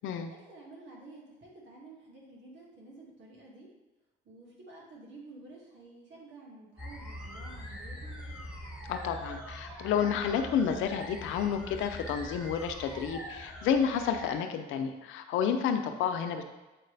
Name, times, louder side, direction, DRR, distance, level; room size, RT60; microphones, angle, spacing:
voice 1, 0.4-3.7 4.2-8.4, right 2 dB, 65° right, -3 dB, 2.2 m, -51 dB
sound 1, 6.8-14.4, equal, 5° right, 1.9 m, -43 dB
voice 2, 8.9-16.4, left 7 dB, 90° left, 7 dB, 0.6 m, -30 dB
7.5 x 4.6 x 3.4 m, 1.1 s
cardioid pair, 90°, 20 cm